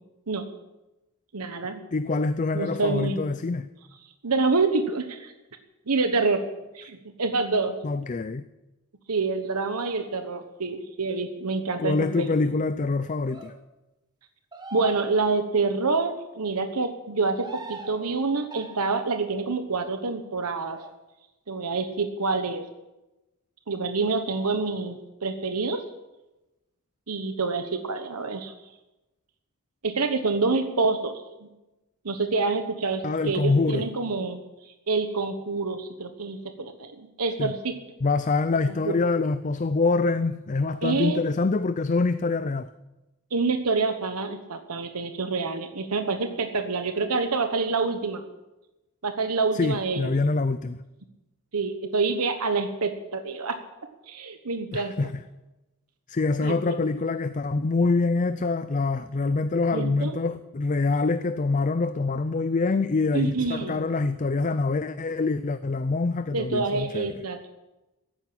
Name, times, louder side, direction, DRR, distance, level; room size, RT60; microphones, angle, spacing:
voice 1, 1.3-1.8 2.5-3.2 4.2-5.3 5.9-6.4 6.7-7.7 9.1-12.4 14.7-20.8 21.5-22.6 23.7-25.8 27.1-28.5 29.8-31.1 32.0-37.7 38.7-38.9 40.8-41.2 43.3-48.2 49.0-50.1 51.5-53.6 54.1-55.1 56.4-56.8 59.7-60.1 63.1-63.8 66.3-67.5, right 4 dB, 90° right, 1.2 m, -27 dB
voice 2, 1.9-3.7 7.8-8.4 11.8-13.5 33.0-33.9 37.4-37.5 38.0-42.7 49.5-50.8 54.7-55.1 56.1-67.1, left 3 dB, 35° left, 0.4 m, -25 dB
sound 1, 9.8-10.3 13.2-13.6 14.5-15.6 17.2-18.1 18.5-19.0 20.7-20.9, right 2 dB, 20° right, 1.5 m, -41 dB
14.0 x 10.5 x 8.9 m
head